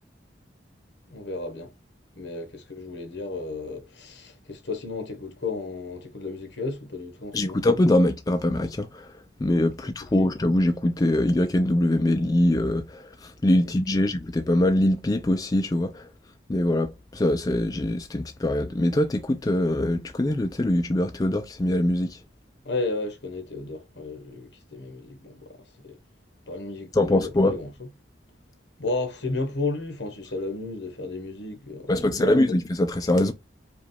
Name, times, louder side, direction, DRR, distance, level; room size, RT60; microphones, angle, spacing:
voice 1, 1.1-1.7 2.1-7.6 9.8-10.3 13.6-14.1 22.6-26.0 26.5-27.9 28.8-32.6, left 3 dB, 70° left, 1.3 m, -33 dB
voice 2, 7.3-9.1 9.4-16.1 16.5-22.2 26.9-27.5 31.9-33.3, left 1 dB, 20° left, 0.4 m, -23 dB
5.0 x 2.4 x 3.3 m
head